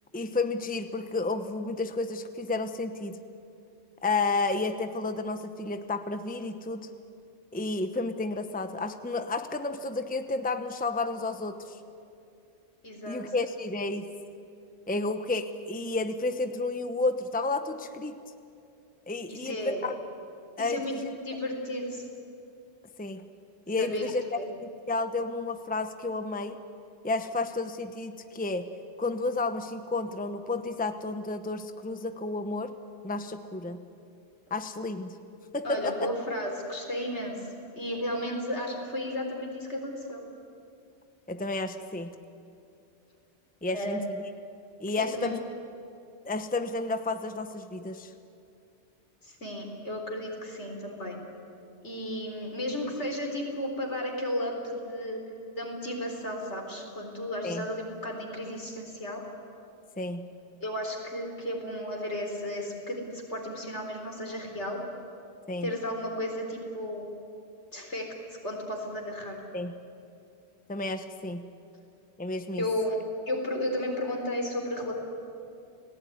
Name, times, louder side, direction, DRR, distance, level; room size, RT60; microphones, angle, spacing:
voice 1, 0.1-3.2 4.0-6.9 7.5-11.8 13.1-14.1 14.9-18.2 19.1-19.9 20.6-21.2 23.0-23.3 23.7-26.6 27.0-28.7 29.0-32.7 33.0-33.8 34.5-35.2 35.5-36.1 41.3-42.1 43.6-44.2 44.8-45.4 46.2-48.1 57.4-57.7 60.0-60.3 65.5-65.7 69.5-69.7 70.7-71.5 72.2-72.7, left 3 dB, 10° left, 9 dB, 0.9 m, -31 dB
voice 2, 12.8-13.2 19.3-19.8 20.6-21.0 21.2-22.1 23.8-24.0 24.4-24.5 35.6-37.4 37.7-40.2 43.7-44.0 45.0-45.3 49.2-51.2 51.8-55.2 55.5-59.2 60.6-64.8 65.6-67.1 67.7-68.1 68.4-69.4 72.6-73.0 73.3-74.9, left 1 dB, 75° left, 2 dB, 4.5 m, -33 dB
30.0 x 18.5 x 9.4 m, 2.6 s
omnidirectional pair, 1.2 m